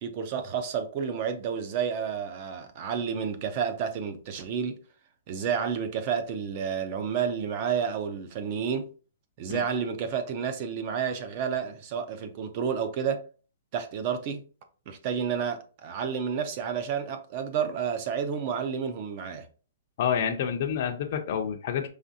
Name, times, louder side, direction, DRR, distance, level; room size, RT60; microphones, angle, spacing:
voice 1, 0.0-4.7 5.3-8.9 9.4-13.2 13.7-14.4 14.9-19.5, right 7 dB, 30° right, 0.6 m, -30 dB
voice 2, 20.0-21.9, left 8 dB, 35° left, 0.5 m, -28 dB
4.9 x 3.3 x 2.7 m
hypercardioid pair, 175°, 0 cm